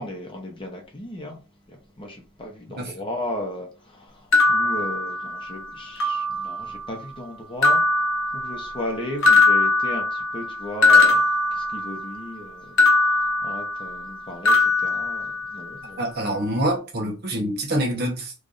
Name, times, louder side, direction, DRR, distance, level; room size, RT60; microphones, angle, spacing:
voice 1, 0.0-1.4 2.0-7.8 8.3-11.2 11.5-12.8 13.4-14.5 14.8-15.3 15.5-16.0, left 1 dB, 25° left, 0.8 m, -35 dB
voice 2, 2.8-3.1 16.0-18.3, right 1 dB, 50° right, 1.0 m, -26 dB
sound 1, 4.3-5.6 6.0-6.8 7.6-8.9 9.2-12.2 12.8-14.2 14.4-15.8, left 3 dB, 65° left, 0.7 m, -21 dB
3.1 x 2.5 x 3.8 m
head